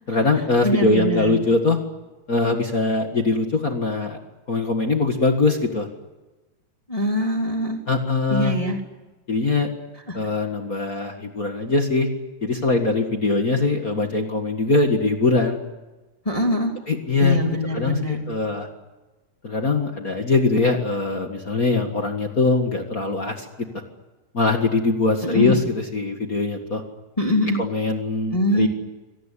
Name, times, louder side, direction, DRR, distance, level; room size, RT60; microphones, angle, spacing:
voice 1, 0.1-1.8 2.3-4.2 4.5-5.9 7.9-8.5 9.3-9.7 10.1-12.1 12.4-15.6 16.9-17.4 17.7-18.7 19.4-23.5 24.3-26.8 27.6-28.7, left 3 dB, 35° left, 4 dB, 1.7 m, -22 dB
voice 2, 0.6-1.4 6.9-7.8 8.3-8.8 10.1-10.2 16.2-16.7 17.2-18.2 25.2-25.6 27.2-27.6 28.3-28.7, left 1 dB, 10° left, 2 dB, 2.6 m, -23 dB
25.5 x 19.0 x 9.9 m, 1.1 s
omnidirectional pair, 3.7 m